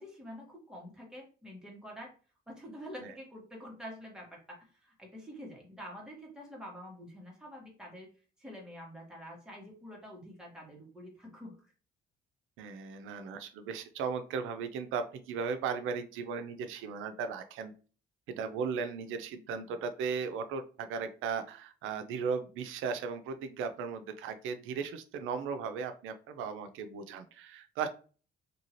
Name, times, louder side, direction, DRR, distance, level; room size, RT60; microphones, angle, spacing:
voice 1, 0.0-2.1 2.5-8.1 8.4-11.5, equal, 5° right, -2 dB, 1.5 m, -47 dB
voice 2, 12.6-17.7 18.3-27.9, right 5 dB, 90° right, 9 dB, 0.4 m, -36 dB
2.8 x 2.7 x 3.0 m, 0.37 s
cardioid pair, 90°, 20 cm